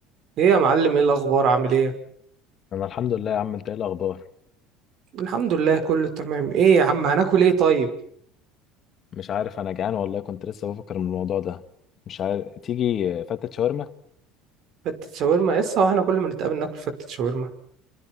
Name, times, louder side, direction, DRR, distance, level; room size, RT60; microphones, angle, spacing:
voice 1, 0.4-1.9 5.1-7.9 14.8-17.5, right 6 dB, 55° right, 5.8 m, -21 dB
voice 2, 2.7-4.2 9.1-11.6 12.1-13.9, left 9 dB, 45° left, 2.1 m, -27 dB
29.0 x 26.5 x 6.2 m
supercardioid pair, 100°, 0 cm